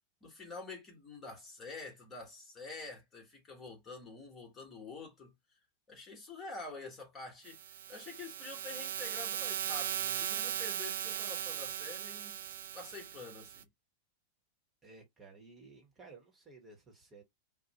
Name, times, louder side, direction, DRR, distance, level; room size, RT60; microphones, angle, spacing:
voice 1, 0.2-5.3 5.9-12.4 12.7-13.7, left 3 dB, 20° left, 1.2 m, -47 dB
sound 1, 7.5-13.6, right 10 dB, 55° right, 0.3 m, -38 dB
voice 2, 14.8-17.2, right 3 dB, 20° right, 1.0 m, -55 dB
2.4 x 2.0 x 2.9 m
figure-of-eight pair, 90°, 0 cm